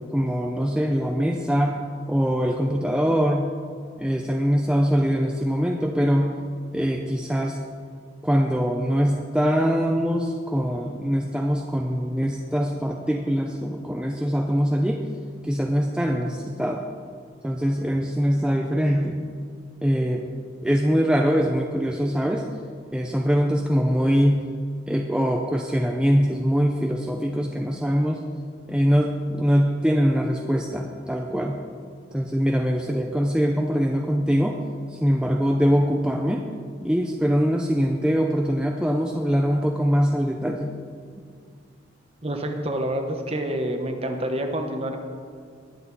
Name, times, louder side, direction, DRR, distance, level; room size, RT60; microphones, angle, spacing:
voice 1, 0.1-1.8 2.1-3.5 4.0-6.4 6.7-7.6 8.2-15.0 15.4-16.9 17.4-19.2 19.8-20.2 20.6-22.5 22.9-24.5 24.9-28.2 28.7-31.6 32.1-34.6 34.9-36.4 36.8-40.7, equal, 5° right, 1 dB, 0.5 m, -23 dB
voice 2, 42.2-45.0, right 1 dB, 30° right, 5 dB, 1.1 m, -27 dB
20.5 x 8.0 x 4.1 m, 2.1 s
head